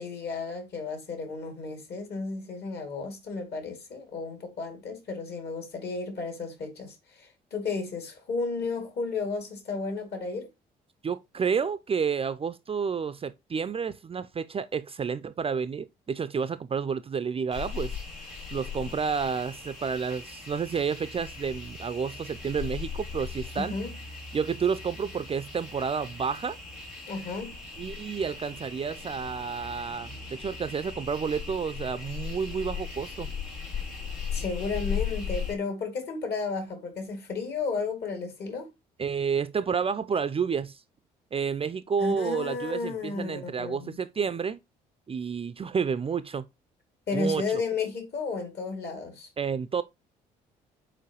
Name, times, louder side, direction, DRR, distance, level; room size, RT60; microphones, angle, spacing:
voice 1, 0.0-10.5 23.6-23.9 27.1-27.6 34.3-38.7 42.0-44.0 47.1-49.3, left 4 dB, 50° left, 2.3 m, -33 dB
voice 2, 11.0-18.0 18.5-23.8 24.3-26.6 27.8-33.3 39.0-40.8 41.3-44.6 45.1-46.5 47.1-47.6 49.4-49.8, right 6 dB, 25° right, 0.5 m, -30 dB
sound 1, 17.5-35.5, left 6 dB, 75° left, 2.7 m, -38 dB
6.9 x 4.7 x 2.9 m
figure-of-eight pair, 50°, 21 cm